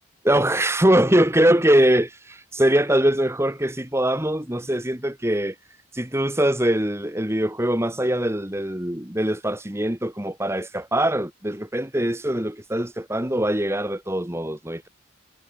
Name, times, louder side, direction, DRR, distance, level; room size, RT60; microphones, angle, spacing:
voice 1, 0.2-5.6 5.9-14.9, right 1 dB, 10° right, 1.6 m, -22 dB
head